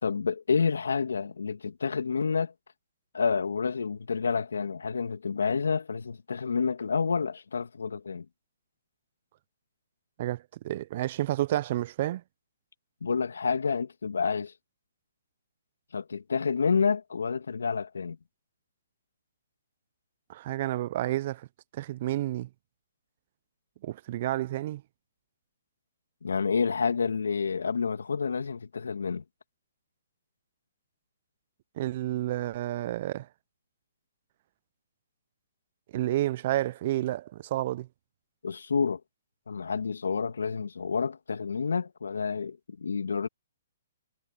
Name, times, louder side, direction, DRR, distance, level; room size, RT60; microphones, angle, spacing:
voice 1, 0.0-2.5 3.1-8.3 13.0-14.5 15.9-18.2 26.2-29.2 38.4-39.0 39.5-43.3, left 5 dB, 80° left, 2.4 m, -29 dB
voice 2, 10.2-12.2 20.3-21.5 21.7-22.5 23.8-24.8 31.8-33.3 35.9-37.9, right 14 dB, 45° right, 0.7 m, -30 dB
hypercardioid pair, 135°, 0 cm